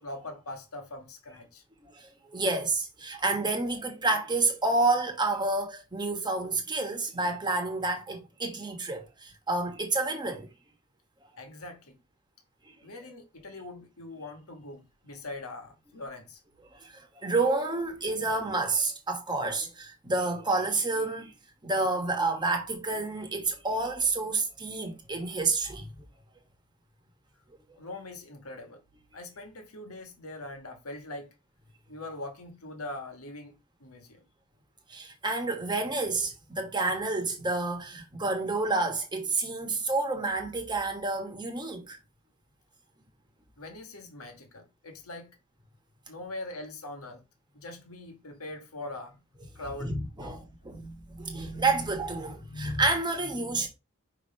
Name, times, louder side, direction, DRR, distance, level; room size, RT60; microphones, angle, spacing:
voice 1, 0.0-1.6 11.4-12.0 12.8-16.4 27.8-28.8 29.1-31.3 31.9-34.2 43.6-45.3 46.1-47.2 47.5-49.2 49.5-50.4, left 2 dB, 75° left, 1.5 m, -42 dB
voice 2, 1.8-10.5 16.7-21.3 21.6-25.9 34.9-42.0 49.8-53.7, right 3 dB, 20° right, 1.4 m, -29 dB
5.3 x 3.2 x 5.5 m
head